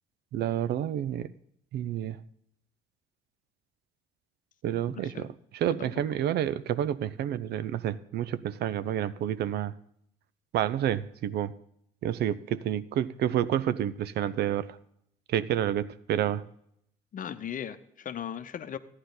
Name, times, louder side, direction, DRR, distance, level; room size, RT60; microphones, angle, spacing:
voice 1, 0.3-1.3 1.7-2.2 4.6-9.7 10.5-11.5 12.0-14.7 15.3-16.4, right 11 dB, 60° right, 16 dB, 0.6 m, -29 dB
voice 2, 4.9-5.3 5.7-6.0 17.1-18.8, left 9 dB, 45° left, 12 dB, 0.9 m, -38 dB
14.5 x 9.8 x 4.0 m, 0.73 s
hypercardioid pair, 60°, 19 cm